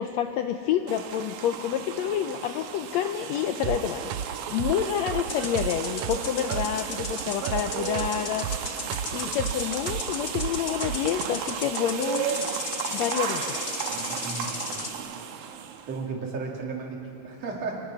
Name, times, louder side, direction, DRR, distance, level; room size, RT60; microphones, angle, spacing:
voice 1, 0.0-8.5 9.1-12.4 12.9-13.6, left 10 dB, 80° left, 7 dB, 1.6 m, -28 dB
sound 1, 0.9-16.0, right 9 dB, 75° right, 2.3 m, -35 dB
sound 2, 3.6-11.3, right 9 dB, 90° right, 1.3 m, -34 dB
sound 3, 5.2-14.9, left 3 dB, 35° left, 1.2 m, -36 dB
voice 2, 13.9-15.2 15.9-17.8, right 4 dB, 55° right, -1 dB, 3.4 m, -36 dB
25.0 x 19.5 x 6.2 m, 2.7 s
omnidirectional pair, 3.6 m